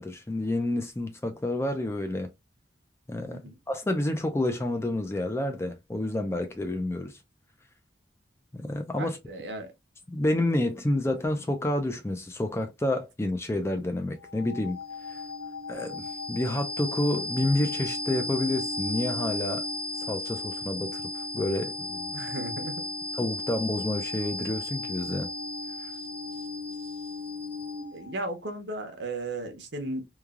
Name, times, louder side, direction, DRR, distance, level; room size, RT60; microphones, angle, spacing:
voice 1, 0.0-2.3 3.1-3.4 3.7-7.1 8.5-9.2 10.1-14.8 15.7-19.6 20.0-21.0 21.3-22.1 23.2-25.3, left 1 dB, 15° left, 0.4 m, -29 dB
voice 2, 9.0-9.7 22.1-22.8 27.9-30.0, right 2 dB, 75° right, 0.8 m, -35 dB
sound 1, 14.2-28.1, left 2 dB, 85° left, 1.5 m, -35 dB
3.1 x 2.3 x 2.4 m
head